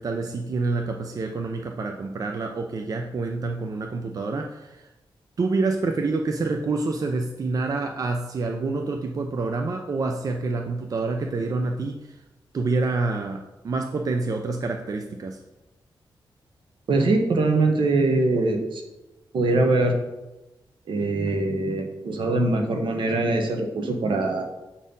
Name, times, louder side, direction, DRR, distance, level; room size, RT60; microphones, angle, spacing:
voice 1, 0.0-4.9 5.4-12.2 12.5-15.4, right 3 dB, 45° right, 4 dB, 0.5 m, -27 dB
voice 2, 16.9-18.8 19.3-20.0 20.9-24.5, right 2 dB, 75° right, 4 dB, 1.2 m, -22 dB
7.3 x 4.3 x 5.3 m, 1.0 s
wide cardioid pair, 145°, 9 cm